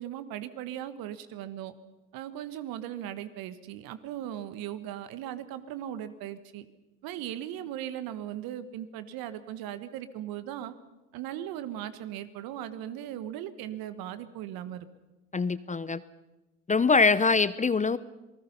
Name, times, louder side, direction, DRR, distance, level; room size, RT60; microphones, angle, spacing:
voice 1, 0.0-1.7 2.1-6.6 7.0-10.7 11.1-14.9, right 11 dB, 60° right, 12 dB, 1.6 m, -38 dB
voice 2, 15.3-16.0 16.7-18.0, left 4 dB, 20° left, 16 dB, 0.8 m, -23 dB
27.5 x 19.5 x 5.7 m, 1.0 s
hypercardioid pair, 65°, 40 cm